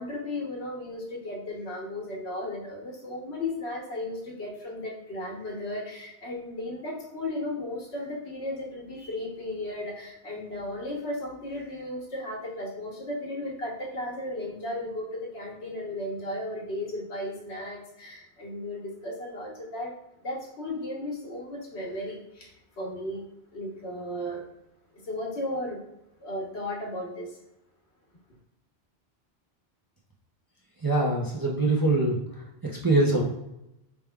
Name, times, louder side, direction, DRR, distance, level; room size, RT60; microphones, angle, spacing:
voice 1, 0.0-19.9 20.2-23.2 23.5-24.4 25.0-25.8 26.2-27.4, left 1 dB, 80° left, -1 dB, 1.3 m, -35 dB
voice 2, 30.8-32.2 32.6-33.2, right 2 dB, 30° right, -4 dB, 0.5 m, -23 dB
4.6 x 3.4 x 2.2 m, 0.87 s
omnidirectional pair, 1.1 m